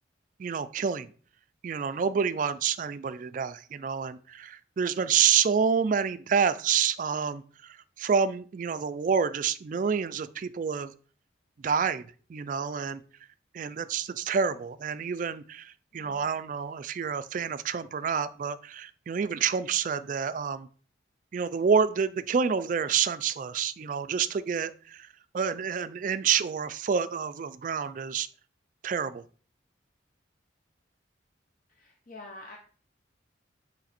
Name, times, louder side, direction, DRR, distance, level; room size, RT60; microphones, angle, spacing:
voice 1, 0.4-1.1 1.6-10.9 11.6-13.0 13.5-20.7 21.3-28.3 28.8-29.2, right 6 dB, 40° right, 14 dB, 0.3 m, -28 dB
voice 2, 15.9-16.4 31.7-32.6, left 2 dB, 45° left, 1 dB, 0.8 m, -47 dB
8.4 x 3.2 x 4.2 m, 0.42 s
head